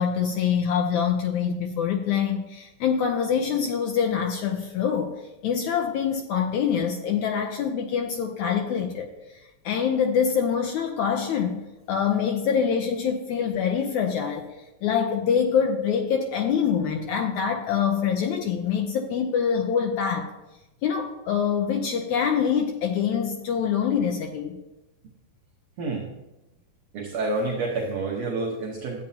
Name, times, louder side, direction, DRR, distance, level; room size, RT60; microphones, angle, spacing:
voice 1, 0.0-5.1 5.4-11.6 11.9-14.5 14.8-20.3 20.8-24.6, left 7 dB, 85° left, 4 dB, 1.7 m, -25 dB
voice 2, 25.8-26.1 26.9-29.0, right 3 dB, 65° right, -1 dB, 1.8 m, -28 dB
13.0 x 8.9 x 2.8 m, 0.99 s
omnidirectional pair, 4.2 m